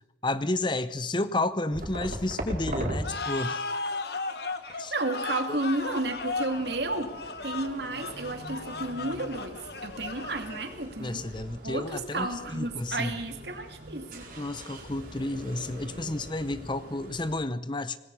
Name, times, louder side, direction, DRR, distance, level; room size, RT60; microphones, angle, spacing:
voice 1, 0.2-3.7 4.8-4.9 5.5-5.6 11.0-13.2 14.4-18.0, left 2 dB, 25° left, 13 dB, 0.8 m, -31 dB
sound 1, 1.7-3.0 4.6-17.4, right 1 dB, 45° right, 4.8 m, -41 dB
sound 2, 3.0-10.9, left 3 dB, 60° left, 1.4 m, -36 dB
voice 2, 4.6-7.1 7.4-11.2 11.6-14.3, right 2 dB, 65° right, 6 dB, 2.8 m, -32 dB
26.0 x 19.0 x 5.6 m, 0.81 s
head